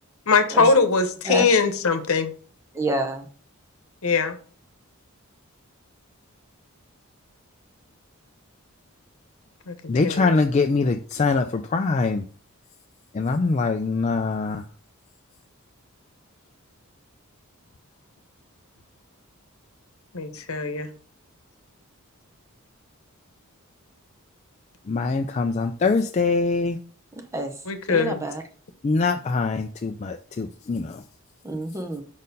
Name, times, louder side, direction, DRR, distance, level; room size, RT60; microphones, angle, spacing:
voice 1, 0.3-2.3 4.0-4.4 9.7-9.8 10.0-10.4 20.1-20.9 27.7-28.3, left 4 dB, 80° left, 9 dB, 0.9 m, -21 dB
voice 2, 1.3-1.8 2.7-3.3 27.1-27.5 27.9-28.4 31.4-32.0, right 2 dB, 15° right, 5 dB, 0.6 m, -28 dB
voice 3, 9.9-12.2 13.1-14.6 24.9-26.8 28.8-31.0, left 4 dB, 30° left, 5 dB, 0.3 m, -23 dB
5.2 x 4.3 x 5.3 m, 0.43 s
head